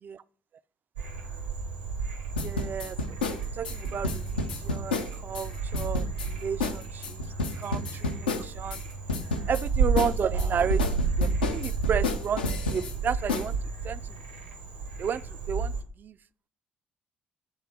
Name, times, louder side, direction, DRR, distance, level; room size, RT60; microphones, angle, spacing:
Frog, 1.0-15.8, right 4 dB, 80° right, 1.0 m, -32 dB
sound 1, 2.4-5.5 5.7-6.3 6.6-6.8 7.0-8.8 9.1-9.6 10.0-12.9 13.3-13.5, left 3 dB, 75° left, 0.5 m, -30 dB
voice 1, 2.4-7.2 7.6-8.8 9.5-13.6 13.8-14.0 15.0-16.2, right 7 dB, 40° right, 0.3 m, -33 dB
8.7 x 3.3 x 4.4 m
figure-of-eight pair, 45°, 5 cm